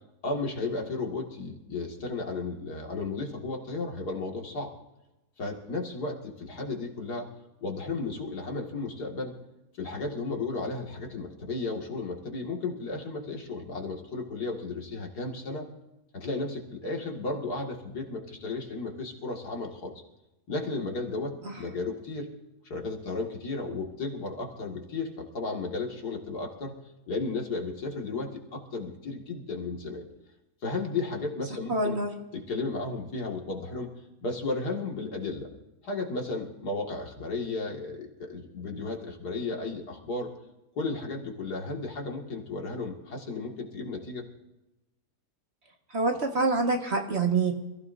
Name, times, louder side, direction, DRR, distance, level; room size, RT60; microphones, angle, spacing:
voice 1, 0.2-4.7 5.4-7.3 7.6-9.3 9.8-15.7 16.1-20.0 20.5-22.3 22.6-26.7 27.1-30.0 30.6-32.0 32.3-33.9 34.2-35.5 35.8-40.3 40.8-44.2, left 3 dB, 80° left, 0 dB, 2.8 m, -34 dB
voice 2, 31.7-32.1 45.9-47.5, right 3 dB, 45° right, 2 dB, 1.9 m, -26 dB
27.0 x 15.5 x 2.7 m, 0.97 s
omnidirectional pair, 1.7 m